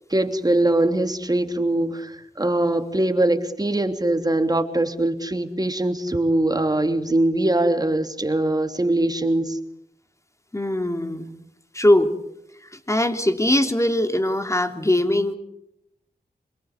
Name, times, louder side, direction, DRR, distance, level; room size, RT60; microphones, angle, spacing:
voice 1, 0.1-9.6, right 1 dB, 25° right, 7 dB, 3.0 m, -22 dB
voice 2, 10.5-11.3 11.7-12.1 12.6-15.3, left 1 dB, 20° left, 7 dB, 3.3 m, -21 dB
26.5 x 23.5 x 8.3 m, 0.79 s
cardioid pair, 60°, 16 cm